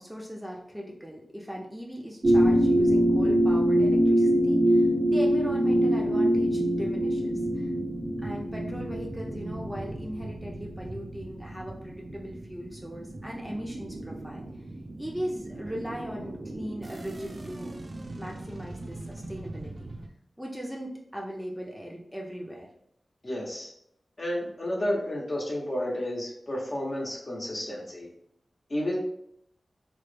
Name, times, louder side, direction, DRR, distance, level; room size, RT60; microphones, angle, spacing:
voice 1, 0.0-7.7 7.9-14.4 15.0-17.7 18.1-19.9 20.4-22.7, equal, 5° right, -2 dB, 0.5 m, -38 dB
sound 1, 2.2-20.1, equal, 50° right, 0.4 m, -26 dB
voice 2, 23.2-23.7 24.2-28.1 28.7-29.0, left 1 dB, 45° left, -3 dB, 1.0 m, -31 dB
3.1 x 2.2 x 3.2 m, 0.74 s
cardioid pair, 50°, 0 cm